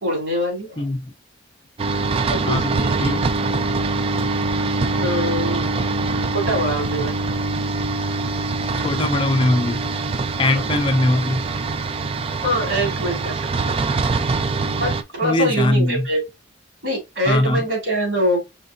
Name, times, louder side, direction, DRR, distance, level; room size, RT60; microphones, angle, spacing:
voice 1, 0.0-0.9 2.3-3.1 4.9-5.6 6.3-7.2 10.4-10.6 12.4-13.8 14.8-16.2 16.8-18.4, equal, 70° right, 2.9 m, -24 dB
voice 2, 0.8-1.1 2.5-3.3 8.8-9.8 10.4-11.4 15.2-16.1 17.3-17.7, left 1 dB, 25° left, 0.5 m, -21 dB
sound 1, 1.8-15.0, right 3 dB, 30° right, 0.3 m, -23 dB
5.1 x 3.4 x 2.6 m
head